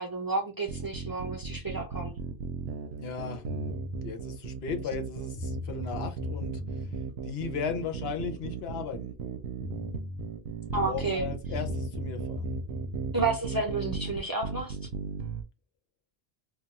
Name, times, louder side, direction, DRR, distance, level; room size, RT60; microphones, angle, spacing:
voice 1, 0.0-2.2 10.7-11.3 13.1-14.8, right 3 dB, 25° right, 0.5 m, -31 dB
sound 1, 0.7-15.4, right 6 dB, 80° right, 0.8 m, -36 dB
voice 2, 3.0-3.4 4.0-6.6 7.2-9.1 10.7-12.5, left 6 dB, 80° left, 0.9 m, -36 dB
sound 2, 3.5-4.0 5.0-5.1 5.3-7.0 9.2-9.3 9.6-10.3 11.5-13.3, left 3 dB, 25° left, 0.5 m, -37 dB
2.3 x 2.3 x 3.9 m
omnidirectional pair, 1.0 m